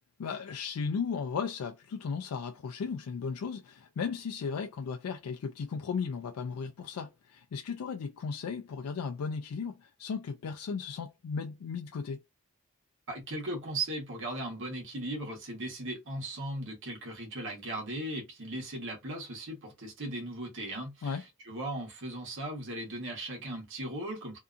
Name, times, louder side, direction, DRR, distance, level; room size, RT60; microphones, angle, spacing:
voice 1, 0.2-12.2 21.0-21.2, left 5 dB, 75° left, 0.4 m, -35 dB
voice 2, 13.1-24.4, right 1 dB, 60° right, 1.1 m, -37 dB
2.7 x 2.4 x 2.3 m
head